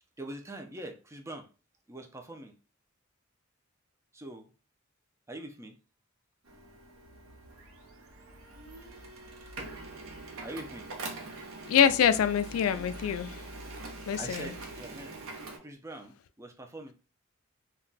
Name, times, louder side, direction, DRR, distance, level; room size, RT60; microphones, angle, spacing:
voice 1, 0.2-1.5 1.9-2.6 4.1-4.5 5.3-5.8 10.4-10.9 12.7-12.8 14.2-15.2 15.6-16.9, right 1 dB, 15° right, 0.4 m, -43 dB
Printer, 6.4-15.6, right 2 dB, 75° right, 0.7 m, -44 dB
voice 2, 11.6-13.4 14.1-14.5, left 8 dB, 90° left, 0.3 m, -25 dB
2.3 x 2.2 x 3.8 m
head